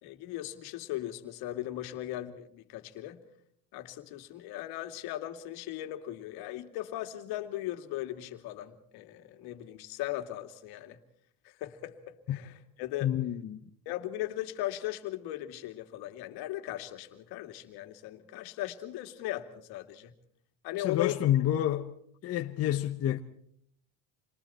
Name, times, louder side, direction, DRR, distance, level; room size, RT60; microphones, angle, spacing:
voice 1, 0.0-3.2 3.7-11.0 11.4-13.1 13.9-20.1 20.6-21.3, left 14 dB, 70° left, 2.6 m, -38 dB
voice 2, 13.0-13.6 20.8-22.0 22.2-23.2, left 12 dB, 40° left, 1.1 m, -28 dB
29.0 x 24.0 x 4.4 m
cardioid pair, 145°, 39 cm